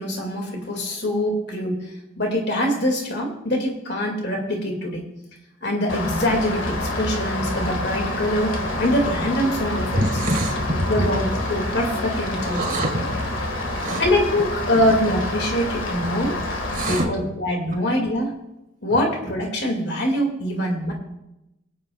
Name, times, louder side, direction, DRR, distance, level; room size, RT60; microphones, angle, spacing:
voice 1, 0.0-1.8 2.2-5.1 5.6-10.0 10.9-13.0 14.0-16.4 16.8-18.3 18.8-20.9, equal, 55° left, 1 dB, 2.3 m, -24 dB
Rain, 5.9-17.0, left 2 dB, 75° left, 1.9 m, -27 dB
voice 2, 9.9-11.0 12.4-13.0 13.6-14.1 14.8-14.9 16.7-17.1 17.7-17.9, right 1 dB, 40° right, 1 dB, 2.0 m, -25 dB
25.5 x 8.6 x 2.4 m, 0.90 s
head